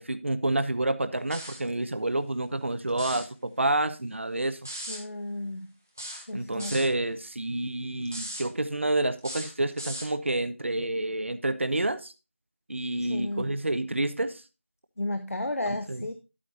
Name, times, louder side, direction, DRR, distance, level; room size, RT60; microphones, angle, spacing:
voice 1, 0.0-4.6 6.3-12.1 12.7-14.4 15.7-16.1, right 2 dB, 60° right, 0.7 m, -29 dB
sound 1, 1.3-1.7 2.9-3.3 4.6-5.0 6.0-6.9 8.0-8.5 9.2-10.1, equal, 10° right, 0.6 m, -38 dB
voice 2, 4.9-5.7 6.3-6.8 13.0-13.5 15.0-16.1, left 2 dB, 80° left, 0.9 m, -33 dB
11.0 x 8.5 x 2.6 m
figure-of-eight pair, 175°, 8 cm